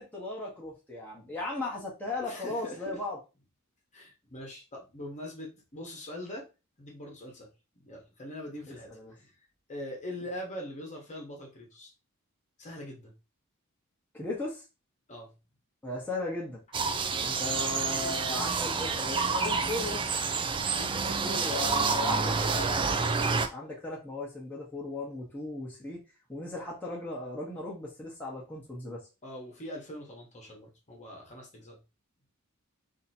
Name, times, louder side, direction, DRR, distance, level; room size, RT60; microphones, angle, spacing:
voice 1, 0.0-3.2 8.7-9.1 14.1-14.6 15.8-16.6 17.1-20.0 20.9-26.0 26.3-29.0, left 2 dB, 10° left, -5 dB, 0.9 m, -37 dB
voice 2, 2.2-2.8 3.9-6.5 6.8-7.5 7.8-9.3 9.7-11.9 12.6-13.1 15.1-15.3 20.7-21.6 29.2-31.8, left 1 dB, 30° left, 0 dB, 1.1 m, -42 dB
sound 1, 16.7-23.5, right 4 dB, 20° right, 0.3 m, -29 dB
2.9 x 2.7 x 4.2 m, 0.28 s
head